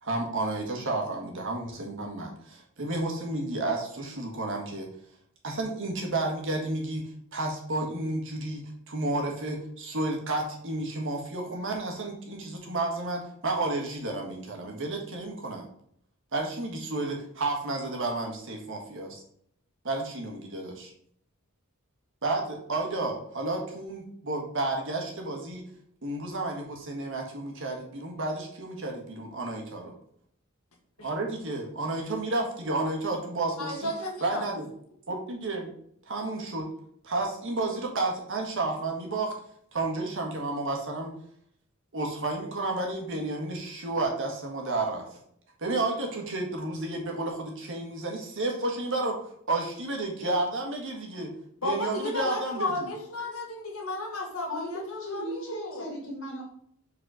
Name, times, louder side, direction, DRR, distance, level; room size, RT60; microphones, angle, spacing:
voice 1, 0.0-4.9 5.4-15.6 16.3-19.2 19.8-20.9 22.2-25.6 26.0-29.9 31.0-33.9 34.2-34.7 35.1-35.7 36.1-36.7 37.0-39.3 39.7-41.1 41.9-45.1 45.6-49.2 49.5-51.3 51.6-52.9, right 2 dB, 65° right, 1 dB, 1.5 m, -31 dB
voice 2, 33.6-34.4 51.6-55.8, left 2 dB, 80° left, 0 dB, 1.7 m, -33 dB
voice 3, 54.5-56.4, equal, 65° left, -2 dB, 2.3 m, -36 dB
5.0 x 4.1 x 5.0 m, 0.67 s
head